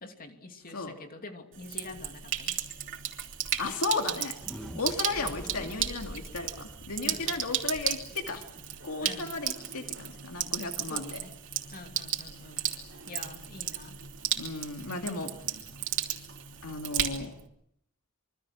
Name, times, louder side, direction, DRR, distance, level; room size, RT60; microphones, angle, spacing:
voice 1, 0.0-2.6 7.0-7.4 9.0-9.4 10.9-11.3 11.7-12.7 13.1-14.0, left 3 dB, 40° left, 5 dB, 2.8 m, -46 dB
Sink (filling or washing), 1.5-17.5, right 10 dB, 60° right, 3.1 m, -35 dB
voice 2, 3.6-4.4 4.7-8.4 8.8-11.2 14.4-15.3 16.6-17.3, left 3 dB, 70° left, 4 dB, 2.5 m, -34 dB
sound 1, 4.3-10.1, equal, ahead, 2.6 m, -46 dB
26.0 x 24.0 x 6.2 m, 0.71 s
head